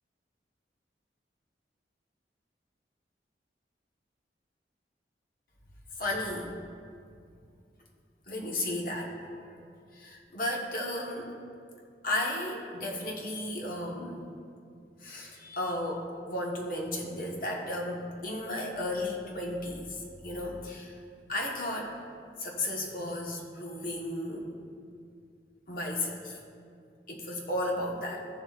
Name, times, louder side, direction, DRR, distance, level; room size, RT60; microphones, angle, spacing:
voice 1, 6.0-6.5 8.3-9.7 9.9-11.3 12.0-14.2 15.0-21.0 21.3-22.0 22.4-24.5 25.7-26.4 27.1-28.3, left 1 dB, 50° left, -1 dB, 1.2 m, -34 dB
14.0 x 7.3 x 2.4 m, 2.3 s
head